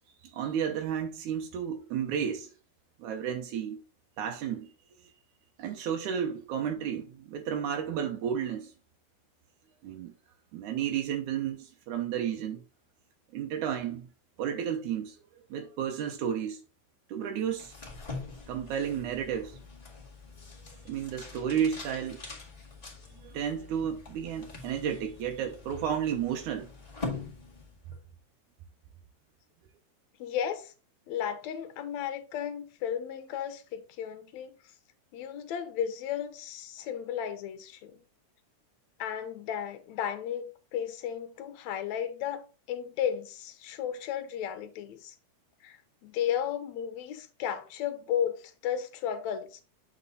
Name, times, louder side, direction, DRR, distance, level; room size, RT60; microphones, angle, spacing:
voice 1, 0.2-2.5 3.0-3.8 4.2-4.7 5.6-8.7 9.8-10.1 10.5-12.6 13.3-14.1 14.4-15.2 15.5-16.6 17.1-17.7 18.5-19.6 20.9-22.2 23.1-26.7, right 8 dB, 85° right, 2.4 m, -32 dB
sound 1, 17.5-28.0, left 3 dB, 15° left, 1.4 m, -44 dB
voice 2, 30.2-30.7 31.1-34.6 35.1-38.0 39.0-45.1 45.6-49.6, left 9 dB, 75° left, 2.1 m, -34 dB
8.3 x 4.3 x 3.8 m
omnidirectional pair, 3.4 m